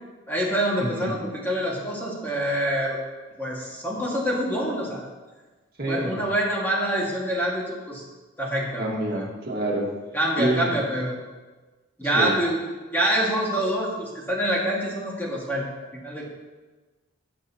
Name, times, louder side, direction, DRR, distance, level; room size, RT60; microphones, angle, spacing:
voice 1, 0.3-3.0 3.4-5.1 5.9-8.0 8.4-9.2 10.1-11.1 12.0-12.6 12.9-15.7 16.0-16.2, right 1 dB, 10° left, -4 dB, 1.8 m, -26 dB
voice 2, 0.8-1.2 5.8-6.3 8.8-9.9 10.4-10.8 12.0-12.3, right 1 dB, 50° right, -2 dB, 1.8 m, -27 dB
18.0 x 6.7 x 2.9 m, 1.3 s
head